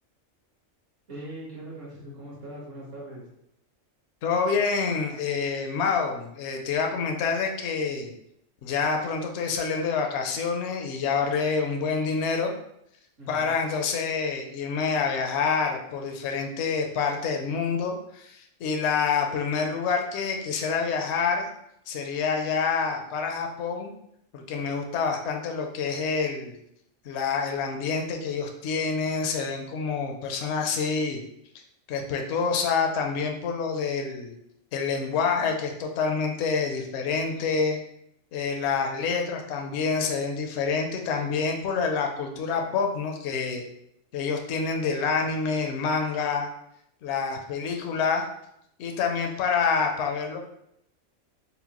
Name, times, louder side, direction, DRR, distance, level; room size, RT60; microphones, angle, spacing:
voice 1, 1.1-3.2 13.2-13.6, right 1 dB, 65° right, -6 dB, 1.7 m, -40 dB
voice 2, 4.2-8.1 8.6-12.5 13.3-21.5 21.9-23.9 24.3-26.6 27.0-31.2 31.9-34.3 34.7-37.8 38.3-43.6 44.1-46.5 47.0-48.3 48.8-50.4, left 5 dB, 65° left, 3 dB, 0.8 m, -27 dB
4.3 x 2.1 x 2.9 m, 0.75 s
omnidirectional pair, 1.4 m